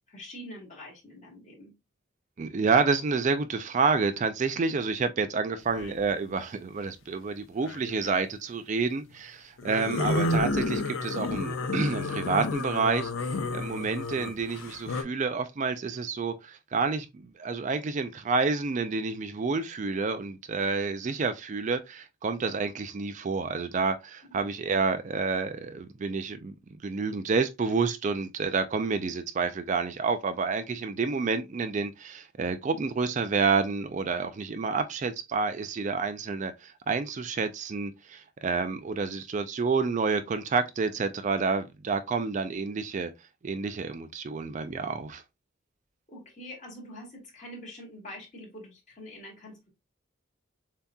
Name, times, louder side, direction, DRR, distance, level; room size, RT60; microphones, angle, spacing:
voice 1, 0.1-1.7 24.3-24.5 46.1-49.7, left 1 dB, 35° left, 2.5 m, -45 dB
voice 2, 2.4-17.1 17.4-26.5 26.8-43.1 43.4-45.2, right 4 dB, 35° right, 0.4 m, -29 dB
sound 1, 5.7-6.0 7.6-8.1 9.6-15.0, left 2 dB, 90° left, 0.7 m, -31 dB
7.0 x 2.8 x 2.3 m
head